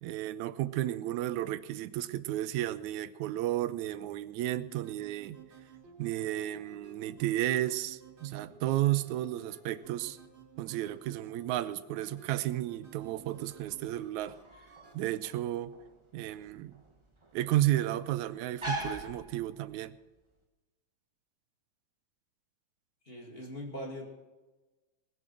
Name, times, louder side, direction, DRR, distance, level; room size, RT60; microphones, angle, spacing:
voice 1, 0.0-5.4 6.0-10.2 10.6-14.4 14.9-15.8 16.1-16.8 17.3-19.9, right 14 dB, 85° right, 14 dB, 2.0 m, -33 dB
sound 1, 4.7-15.1, right 4 dB, 25° right, 4.0 m, -55 dB
sound 2, 13.0-20.0, equal, 50° right, 0.3 m, -43 dB
voice 2, 23.0-24.0, equal, 20° left, 0 dB, 2.2 m, -41 dB
20.0 x 7.8 x 6.2 m, 1.2 s
omnidirectional pair, 3.4 m